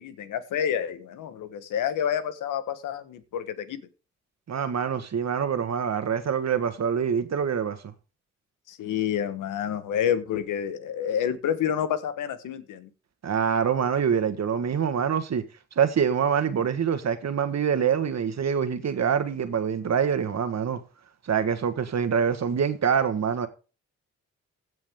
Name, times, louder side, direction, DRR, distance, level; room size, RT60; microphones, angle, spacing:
voice 1, 0.0-3.8 8.7-12.9, left 9 dB, 90° left, 1.3 m, -29 dB
voice 2, 4.5-7.9 13.2-15.4 15.7-20.8 21.2-23.5, right 7 dB, 60° right, 1.5 m, -25 dB
16.0 x 6.2 x 3.6 m
supercardioid pair, 55°, 30 cm